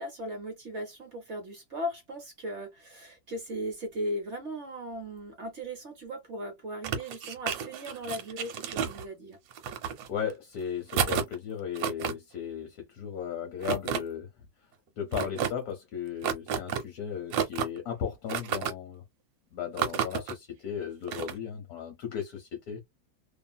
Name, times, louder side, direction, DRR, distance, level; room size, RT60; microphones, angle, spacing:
voice 1, 0.0-9.4, equal, 50° right, 0.9 m, -37 dB
sound 1, 6.8-9.0 9.5-10.3 10.9-11.3 11.7-12.1 13.6-14.0 15.1-15.5 16.2-16.8 17.3-17.8 18.3-18.7 19.8-20.3 21.1-21.3, right 8 dB, 85° right, 1.3 m, -30 dB
voice 2, 10.1-14.3 15.0-19.0 19.5-22.8, left 8 dB, 65° left, 1.1 m, -36 dB
2.8 x 2.5 x 2.2 m
omnidirectional pair, 2.1 m